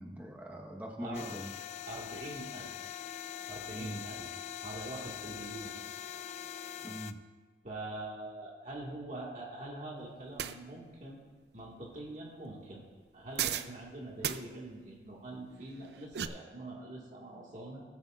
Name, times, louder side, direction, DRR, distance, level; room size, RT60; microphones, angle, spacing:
voice 1, 0.0-1.5 3.7-4.0 6.8-7.1, equal, 10° right, 1 dB, 1.0 m, -42 dB
voice 2, 1.0-1.3 1.8-2.7 3.5-4.3 4.6-5.7 7.6-11.2 11.5-12.8 13.1-17.8, right 2 dB, 45° right, -4 dB, 1.7 m, -44 dB
sound 1, 1.1-7.1, left 9 dB, 40° left, 0.3 m, -43 dB
sound 2, 10.4-10.6 13.4-13.7 14.2-14.4 15.8-16.3, right 10 dB, 65° right, 0.4 m, -34 dB
19.0 x 8.2 x 2.4 m, 1.4 s
head